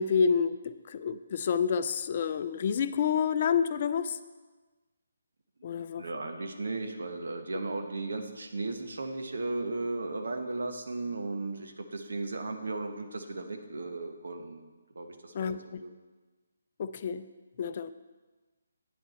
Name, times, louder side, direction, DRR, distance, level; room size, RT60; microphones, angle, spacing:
voice 1, 0.0-4.2 5.6-6.0 15.3-15.8 16.8-17.2 17.6-17.9, left 6 dB, 40° left, 12 dB, 0.5 m, -29 dB
voice 2, 5.7-14.6 14.9-15.9, right 2 dB, 70° right, 6 dB, 1.2 m, -36 dB
9.3 x 8.0 x 4.4 m, 1.3 s
figure-of-eight pair, 150°, 0 cm